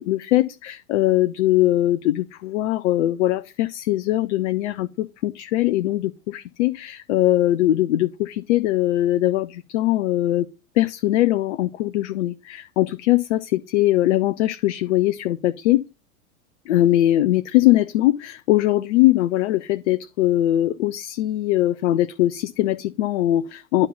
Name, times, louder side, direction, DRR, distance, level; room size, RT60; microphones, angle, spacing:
voice 1, 0.0-10.5 10.8-15.8 16.7-23.9, left 15 dB, 55° left, 0.7 m, -21 dB
10.5 x 3.7 x 5.7 m
figure-of-eight pair, 90°, 44 cm